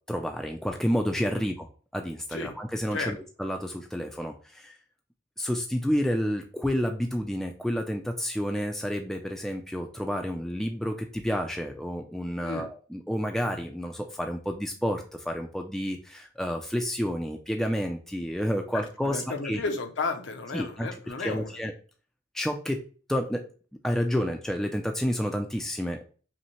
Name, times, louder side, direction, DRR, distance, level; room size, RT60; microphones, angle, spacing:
voice 1, 0.1-1.7 1.9-4.7 5.4-19.6 20.5-20.9 21.2-21.7 22.3-22.8 23.1-23.4 23.8-26.0, equal, ahead, 0.3 m, -30 dB
voice 2, 18.7-21.5, left 3 dB, 65° left, 0.6 m, -33 dB
5.4 x 2.1 x 2.9 m
head